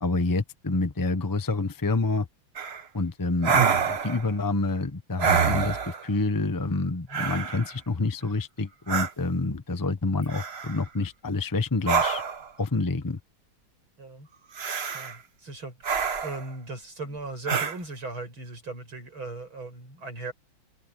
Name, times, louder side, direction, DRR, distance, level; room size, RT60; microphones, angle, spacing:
voice 1, 0.0-2.3 2.9-12.2 12.6-13.2, left 3 dB, 30° left, 0.4 m, -28 dB
sound 1, 2.6-2.8 3.4-4.3 5.2-6.1 7.1-7.7 8.9-9.1 10.3-10.8 11.9-12.5 14.6-15.2 15.8-16.5 17.5-17.8, right 6 dB, 40° right, 1.1 m, -26 dB
voice 2, 14.9-20.3, right 3 dB, 90° right, 8.9 m, -38 dB
omnidirectional pair, 2.2 m